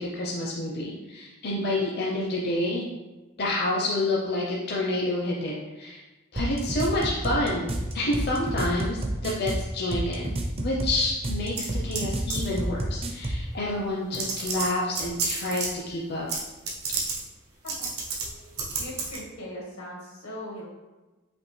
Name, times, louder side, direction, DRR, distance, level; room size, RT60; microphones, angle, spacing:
voice 1, 0.0-2.8 3.4-6.0 6.3-10.3 10.6-16.3, left 1 dB, 50° left, -3 dB, 0.6 m, -28 dB
sound 1, 6.4-13.5, right 1 dB, 25° right, 0.5 m, -30 dB
sound 2, 11.6-12.0 12.3-12.6 13.5-13.6 14.1-15.7 16.3-16.4 16.7-17.2 17.7-18.3 18.6-19.2, right 5 dB, 85° right, 1.0 m, -30 dB
voice 2, 18.2-20.7, left 1 dB, 90° left, -3 dB, 1.5 m, -40 dB
5.1 x 2.8 x 3.2 m, 1.1 s
head